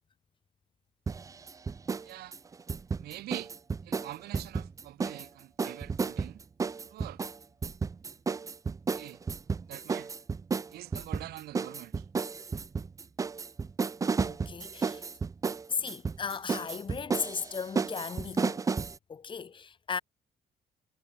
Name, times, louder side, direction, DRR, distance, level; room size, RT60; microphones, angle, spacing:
sound 1, 1.1-2.1 2.3-5.3 5.6-19.0, right 5 dB, 20° right, 0.4 m, -33 dB
voice 1, 2.0-2.4 3.0-3.5 3.8-6.4 6.8-7.2 8.9-9.2 9.7-10.1 10.7-12.1, right 15 dB, 75° right, 0.5 m, -44 dB
voice 2, 14.2-15.0 15.7-18.7 19.1-20.0, left 6 dB, 30° left, 0.8 m, -36 dB
cardioid pair, 120°, 16 cm